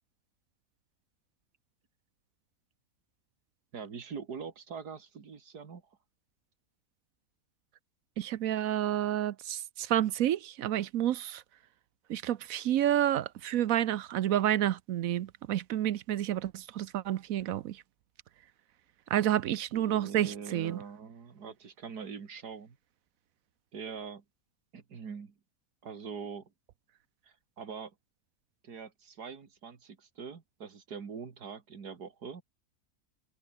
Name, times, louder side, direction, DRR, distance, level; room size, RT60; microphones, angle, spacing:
voice 1, 3.7-5.8 19.7-22.8 23.7-24.2 24.7-25.3 25.8-26.5 27.2-27.9 28.6-32.4, right 6 dB, 90° right, 2.6 m, -43 dB
voice 2, 8.2-11.4 12.1-17.8 19.1-20.8, right 12 dB, 70° right, 1.0 m, -29 dB
omnidirectional pair, 1.7 m